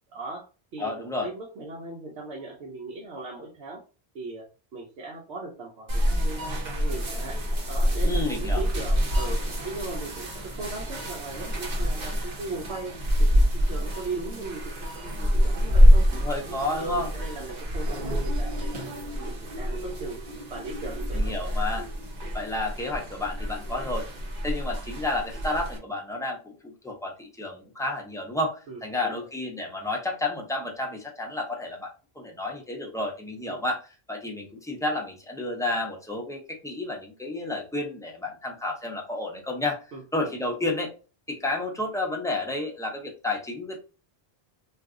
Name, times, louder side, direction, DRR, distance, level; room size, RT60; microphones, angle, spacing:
voice 1, 0.1-0.5 0.7-0.9 1.2-3.8 4.1-7.4 7.7-12.9 13.2-16.1 16.4-18.9 19.2-20.2 20.5-21.4 21.8-22.0 28.7-29.3 33.5-33.6 39.9-40.4, right 3 dB, 80° right, -1 dB, 0.9 m, -38 dB
voice 2, 0.8-1.3 8.0-8.6 16.1-17.1 21.2-21.8 22.3-24.1 24.4-31.9 32.2-33.8 34.1-39.8 40.1-40.9 41.3-43.8, left 2 dB, 5° left, 0 dB, 0.4 m, -31 dB
sound 1, 5.9-25.8, equal, 50° right, 0.8 m, -26 dB
2.4 x 2.3 x 3.5 m, 0.34 s
omnidirectional pair, 1.1 m